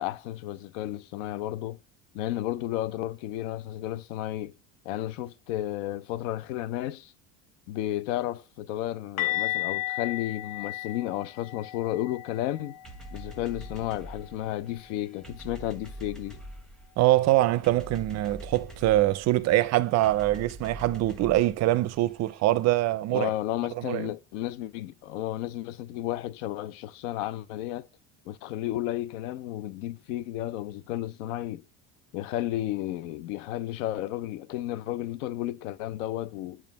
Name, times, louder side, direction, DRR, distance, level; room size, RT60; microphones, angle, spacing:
voice 1, 0.0-1.8 2.1-4.5 4.8-7.1 7.7-12.8 13.1-16.4 23.1-27.9 28.3-31.6 32.1-36.6, left 14 dB, 85° left, 0.5 m, -32 dB
sound 1, 9.2-15.0 15.2-15.5 15.8-16.0 19.2-19.3, left 17 dB, 65° left, 1.1 m, -35 dB
sound 2, 12.8-22.4, right 1 dB, ahead, 0.9 m, -45 dB
voice 2, 17.0-23.3 23.8-24.1, right 16 dB, 45° right, 0.5 m, -24 dB
7.4 x 2.5 x 5.2 m
supercardioid pair, 110°, 37 cm